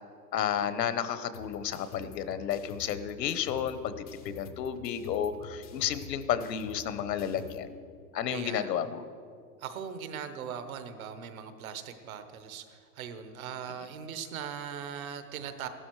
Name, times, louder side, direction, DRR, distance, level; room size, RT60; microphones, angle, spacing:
voice 1, 0.3-7.7 8.1-9.0, left 9 dB, 80° left, 12 dB, 1.0 m, -32 dB
sound 1, 1.3-7.6, left 6 dB, 25° left, 0.4 m, -48 dB
voice 2, 8.3-8.8 9.6-15.7, right 8 dB, 55° right, 9 dB, 1.2 m, -40 dB
15.0 x 12.5 x 4.7 m, 2.3 s
supercardioid pair, 160°, 49 cm